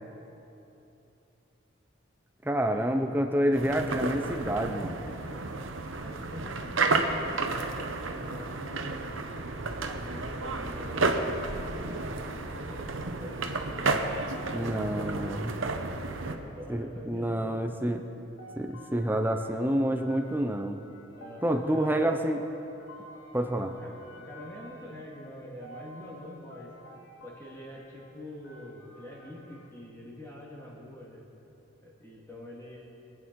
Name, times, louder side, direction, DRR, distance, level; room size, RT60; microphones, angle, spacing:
voice 1, 2.4-5.0 14.5-15.5 16.7-18.0 18.6-20.8 21.4-22.4 23.3-23.7, right 1 dB, 10° right, 5 dB, 0.7 m, -28 dB
sound 1, 3.5-16.4, right 3 dB, 80° right, 0.9 m, -32 dB
voice 2, 5.0-9.2 9.9-12.2 12.6-14.0 16.1-17.6 21.1-22.1 23.8-26.7 27.2-31.3 31.8-32.8, equal, 15° left, -4 dB, 2.2 m, -45 dB
sound 2, 18.4-29.7, equal, 80° left, 1.8 m, -52 dB
23.5 x 8.7 x 4.7 m, 2.9 s
head